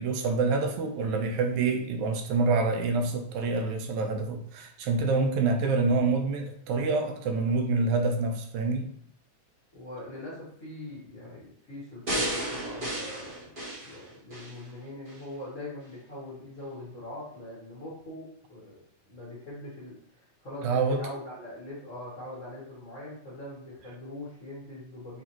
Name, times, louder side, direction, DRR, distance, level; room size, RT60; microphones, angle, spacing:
voice 1, 0.0-8.9 20.6-21.0, right 3 dB, 80° right, 3 dB, 2.0 m, -27 dB
voice 2, 9.7-18.8 19.0-25.2, left 1 dB, 50° left, -8 dB, 0.9 m, -42 dB
sound 1, 12.1-14.6 15.1-15.2, right 1 dB, 40° right, 0.7 m, -33 dB
6.6 x 2.5 x 2.9 m, 0.64 s
omnidirectional pair, 3.3 m